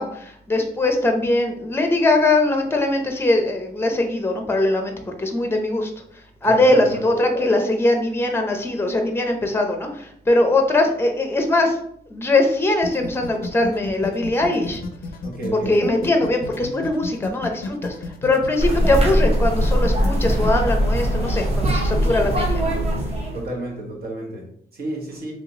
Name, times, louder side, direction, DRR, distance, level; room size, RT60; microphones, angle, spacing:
voice 1, 0.0-5.9 6.4-11.8 12.1-14.8 15.5-17.9 18.2-22.7, left 2 dB, 15° left, 3 dB, 0.6 m, -21 dB
voice 2, 6.4-7.0 15.2-15.8 23.3-25.4, right 1 dB, 60° right, -2 dB, 1.1 m, -31 dB
sound 1, 12.8-20.7, left 3 dB, 55° left, 0.4 m, -32 dB
sound 2, 18.6-23.4, equal, 35° right, 0.9 m, -21 dB
3.2 x 2.9 x 2.8 m, 0.66 s
cardioid pair, 110°, 18 cm